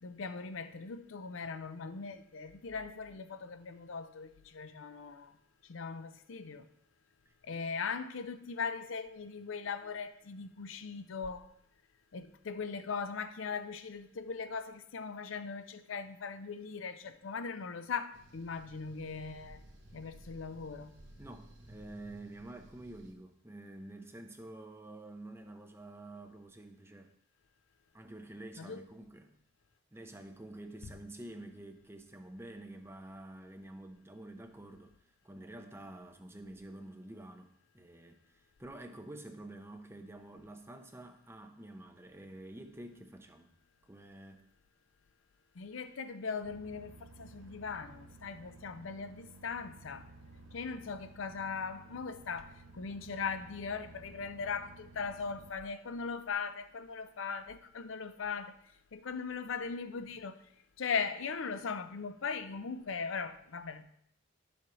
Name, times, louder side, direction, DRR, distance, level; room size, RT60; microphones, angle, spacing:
voice 1, 0.0-5.3 5.7-6.7 7.4-11.5 12.1-19.6 19.9-20.9 28.6-28.8 45.6-50.1 50.5-58.5 58.9-60.4 60.8-63.8, left 5 dB, 75° left, 0.6 m, -39 dB
sound 1, 18.1-23.1, right 1 dB, 60° right, 1.0 m, -56 dB
voice 2, 21.2-27.1 27.9-29.3 29.9-34.9 35.2-43.5 43.9-44.5, right 1 dB, 10° right, 0.6 m, -49 dB
sound 2, 46.4-55.5, right 2 dB, 85° right, 0.8 m, -55 dB
11.0 x 7.1 x 3.1 m
head